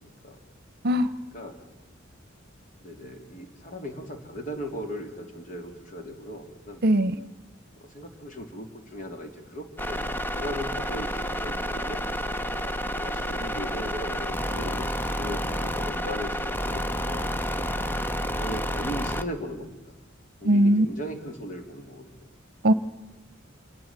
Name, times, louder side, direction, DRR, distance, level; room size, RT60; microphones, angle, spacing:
voice 1, 0.0-0.4 1.3-1.6 2.8-7.1 7.8-12.1 12.9-17.3 18.3-19.8 20.4-22.1, equal, 40° left, 4 dB, 3.4 m, -38 dB
voice 2, 6.8-7.2 20.4-20.9 22.6-22.7, right 1 dB, 55° right, 14 dB, 0.9 m, -19 dB
sound 1, 9.8-19.2, equal, 10° left, 0.8 m, -30 dB
28.0 x 19.0 x 7.5 m, 1.1 s
head